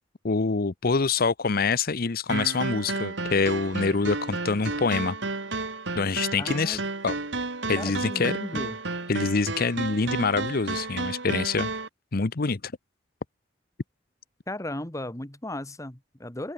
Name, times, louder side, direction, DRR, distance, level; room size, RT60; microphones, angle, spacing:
voice 1, 0.2-5.2 5.9-7.1 7.7-8.3 9.1-11.7 12.1-12.7, left 4 dB, 55° left, 0.8 m, -25 dB
sound 1, 2.3-11.9, right 3 dB, 80° right, 2.6 m, -32 dB
voice 2, 6.4-6.8 7.7-8.8 14.5-16.5, left 1 dB, 20° left, 2.0 m, -36 dB
open air
head